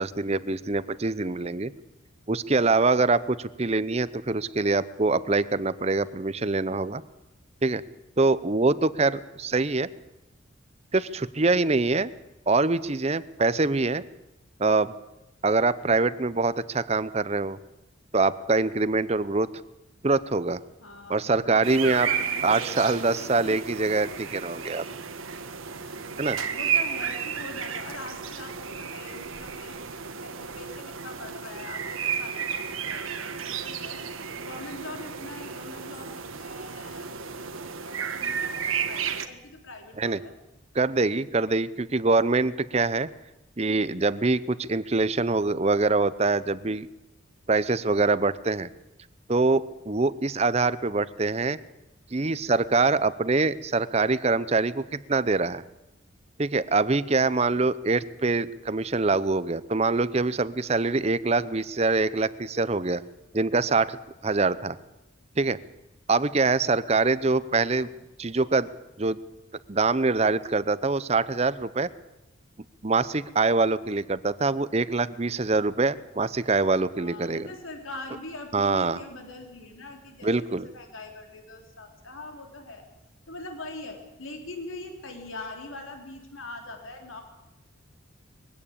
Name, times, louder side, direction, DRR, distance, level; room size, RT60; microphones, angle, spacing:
voice 1, 0.0-1.7 2.3-7.0 7.6-7.8 8.2-9.9 10.9-12.1 12.5-14.0 14.6-14.9 15.4-17.6 18.1-19.5 20.0-20.6 21.1-22.1 22.4-24.8 26.2-26.4 40.0-40.2 40.7-43.1 43.6-46.9 47.5-48.7 49.3-51.6 52.1-55.6 56.4-63.0 63.3-64.0 64.2-64.8 65.4-65.6 66.1-67.9 68.2-68.7 69.0-69.2 69.7-71.9 72.8-77.5 78.5-79.0 80.2-80.7, right 3 dB, 30° right, 16 dB, 0.6 m, -24 dB
voice 2, 20.8-23.6 24.6-24.8 26.3-34.0 34.3-40.3 77.0-82.9 83.3-87.3, left 2 dB, 75° left, 4 dB, 3.4 m, -42 dB
sound 1, 21.6-39.3, right 7 dB, 85° right, 1.5 m, -33 dB
22.0 x 16.0 x 8.6 m, 0.96 s
head